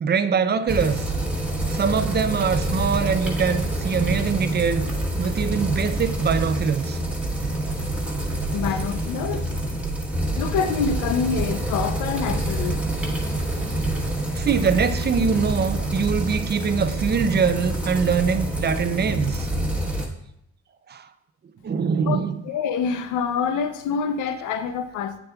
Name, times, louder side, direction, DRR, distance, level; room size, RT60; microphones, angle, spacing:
voice 1, 0.0-1.1 1.7-4.9 5.2-7.0 14.3-19.5 20.9-21.1 21.6-22.4, right 6 dB, 35° right, 11 dB, 0.5 m, -23 dB
sound 1, 0.7-20.1, right 1 dB, 5° right, 1.3 m, -27 dB
voice 2, 8.5-9.5 10.4-12.8 22.1-22.2 22.4-25.2, left 6 dB, 85° left, 9 dB, 0.6 m, -26 dB
8.3 x 6.6 x 2.3 m, 0.77 s
cardioid pair, 90°, 30 cm